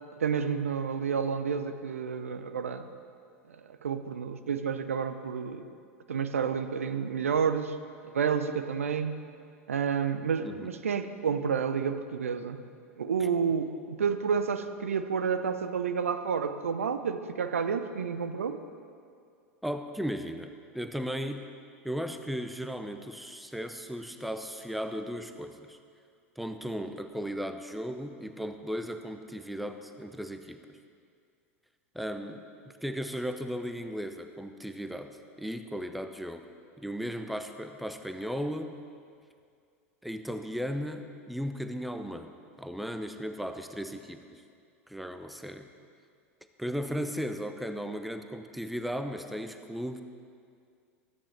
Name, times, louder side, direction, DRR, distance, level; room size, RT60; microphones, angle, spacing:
voice 1, 0.2-2.9 3.5-5.7 6.1-7.8 8.1-9.2 9.7-12.6 13.0-18.6, right 6 dB, 70° right, 10 dB, 0.6 m, -30 dB
voice 2, 19.6-21.5 21.8-25.8 26.4-30.8 31.9-32.4 32.8-36.4 36.8-38.8 40.0-42.3 42.6-44.4 44.9-45.7 46.6-50.0, equal, ahead, 8 dB, 0.7 m, -36 dB
16.0 x 13.5 x 3.3 m, 2.3 s
figure-of-eight pair, 85°, 8 cm